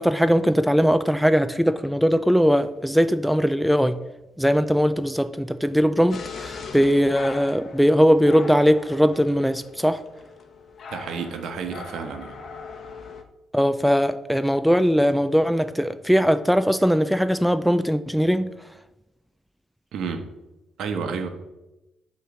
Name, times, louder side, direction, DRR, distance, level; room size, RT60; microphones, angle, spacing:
voice 1, 0.0-4.0 4.4-10.0 13.5-18.5, equal, ahead, 11 dB, 0.3 m, -20 dB
sound 1, 6.1-13.2, left 4 dB, 50° left, 0.9 m, -40 dB
voice 2, 10.9-12.4 19.9-20.2 20.8-21.3, right 5 dB, 75° right, 6 dB, 0.9 m, -30 dB
8.1 x 3.1 x 6.1 m, 0.98 s
cardioid pair, 90°, 0 cm